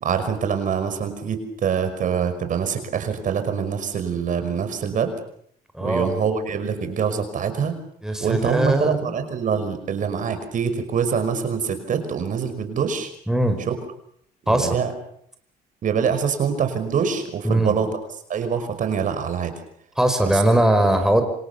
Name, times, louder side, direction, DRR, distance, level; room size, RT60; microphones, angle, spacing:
voice 1, 0.0-5.2 5.8-7.8 8.2-13.1 13.7-13.8 14.4-14.9 15.8-17.9 18.3-19.5 20.2-20.4, right 6 dB, 50° right, 8 dB, 5.5 m, -24 dB
voice 2, 5.7-6.1 8.0-9.1 13.3-13.6 14.5-14.8 17.4-17.8 20.0-21.2, right 1 dB, 5° right, 5 dB, 4.8 m, -20 dB
27.0 x 26.5 x 7.0 m, 0.67 s
cardioid pair, 110°, 17 cm